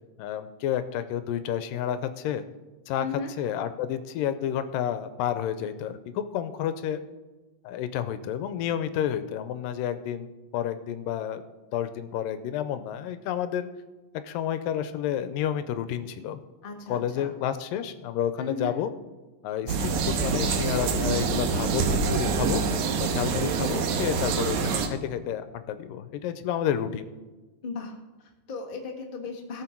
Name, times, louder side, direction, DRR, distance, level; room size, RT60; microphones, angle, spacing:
voice 1, 0.2-2.5 2.9-3.1 3.4-7.0 7.6-11.4 11.7-13.7 14.2-16.4 16.9-18.9 19.4-22.6 23.0-27.0, left 10 dB, 85° left, 11 dB, 2.3 m, -30 dB
voice 2, 3.0-3.3 16.6-17.3 18.4-18.7 27.6-29.6, left 4 dB, 50° left, 0 dB, 0.6 m, -36 dB
sound 1, 19.7-24.9, right 5 dB, 70° right, 2.2 m, -26 dB
17.5 x 6.5 x 4.5 m, 1.2 s
omnidirectional pair, 4.0 m